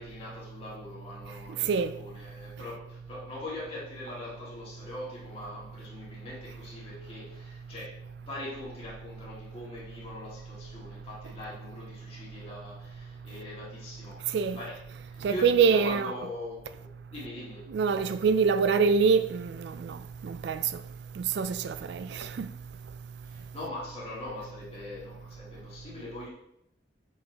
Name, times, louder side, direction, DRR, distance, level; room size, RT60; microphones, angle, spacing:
voice 1, 0.0-14.8 15.1-17.7 23.2-26.3, left 1 dB, 35° left, 2.2 m, -42 dB
voice 2, 15.2-16.1 17.7-20.0 20.2-20.6 21.2-22.5, right 5 dB, 65° right, 0.3 m, -25 dB
6.8 x 5.4 x 2.9 m
head